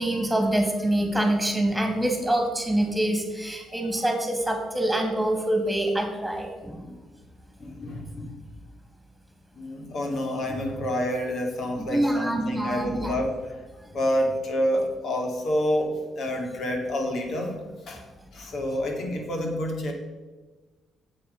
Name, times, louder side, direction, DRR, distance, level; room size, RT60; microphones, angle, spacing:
voice 1, 0.0-6.8 11.9-13.1, right 1 dB, 5° right, 2 dB, 2.7 m, -25 dB
voice 2, 7.6-8.4 9.5-13.6 13.9-17.6 17.8-18.0 18.3-19.9, equal, 60° left, 2 dB, 2.6 m, -28 dB
8.5 x 7.8 x 5.2 m, 1.2 s
cardioid pair, 90°, 0 cm